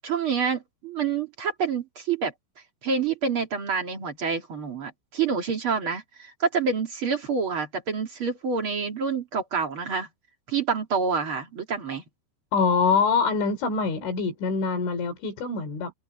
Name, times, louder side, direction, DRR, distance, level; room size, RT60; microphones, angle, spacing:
voice 1, 0.0-2.3 2.8-10.1 10.5-12.0, right 5 dB, 45° right, 1.9 m, -27 dB
voice 2, 12.5-15.9, left 5 dB, 80° left, 6.0 m, -24 dB
omnidirectional pair, 5.4 m